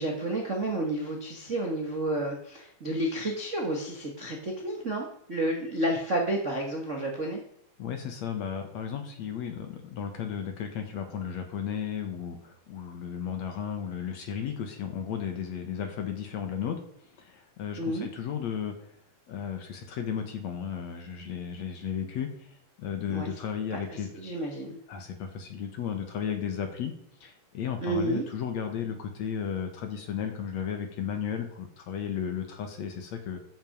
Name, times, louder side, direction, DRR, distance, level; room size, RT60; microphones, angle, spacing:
voice 1, 0.0-7.4 17.8-18.1 23.1-23.3 23.7-24.8 27.8-28.2, right 1 dB, 60° right, -1 dB, 0.7 m, -31 dB
voice 2, 7.8-16.8 17.2-18.9 19.3-24.1 24.9-26.9 27.2-33.4, left 8 dB, 60° left, 6 dB, 2.1 m, -34 dB
13.5 x 6.4 x 5.3 m, 0.71 s
omnidirectional pair, 4.2 m